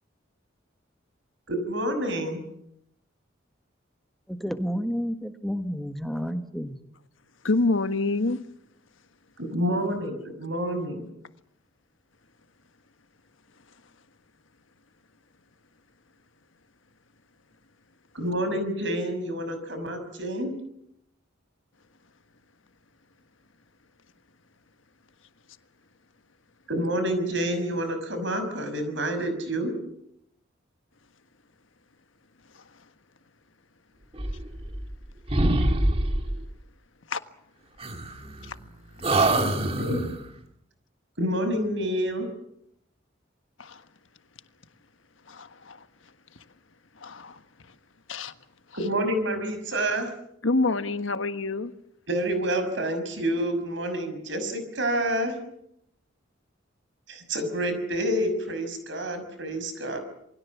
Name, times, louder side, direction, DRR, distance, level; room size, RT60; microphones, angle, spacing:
voice 1, 1.5-2.4 9.4-11.0 18.1-20.5 26.7-29.7 39.4-40.0 41.2-42.3 48.7-50.1 52.1-55.4 57.1-60.0, right 1 dB, 70° right, 9 dB, 6.0 m, -28 dB
voice 2, 4.3-6.8, equal, ahead, 7 dB, 1.5 m, -30 dB
voice 3, 7.4-8.4 32.5-32.6 37.1-37.2 38.4-38.5 39.2-39.3 43.6-43.8 45.3-45.9 47.0-47.4 48.1-48.3 50.4-51.7, left 3 dB, 85° left, 10 dB, 1.5 m, -27 dB
sound 1, 34.1-35.0 35.3-36.5 37.8-38.7 39.0-40.3, right 2 dB, 30° right, 1.7 m, -25 dB
28.0 x 21.5 x 7.2 m, 0.78 s
head